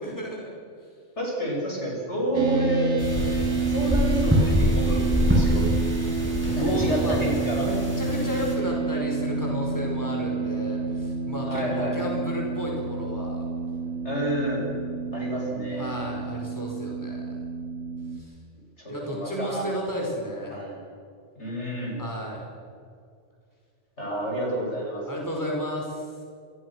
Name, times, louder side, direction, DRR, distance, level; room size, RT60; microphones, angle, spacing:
voice 1, 0.0-0.5 6.6-7.2 7.6-13.4 15.7-17.4 18.1-18.3 18.9-20.6 22.0-22.5 25.0-26.0, equal, 15° left, -1 dB, 5.5 m, -32 dB
voice 2, 1.2-2.9 3.7-5.6 6.5-7.7 8.1-8.2 11.5-12.0 14.0-14.6 15.1-16.0 18.8-19.6 20.5-20.8 21.4-22.0 24.0-25.3, right 1 dB, 70° left, -2 dB, 8.1 m, -29 dB
sound 1, 2.3-18.2, right 4 dB, 70° right, 2.9 m, -29 dB
sound 2, 3.0-8.6, equal, 10° right, 7.8 m, -25 dB
27.5 x 22.5 x 6.4 m, 2.3 s
omnidirectional pair, 1.2 m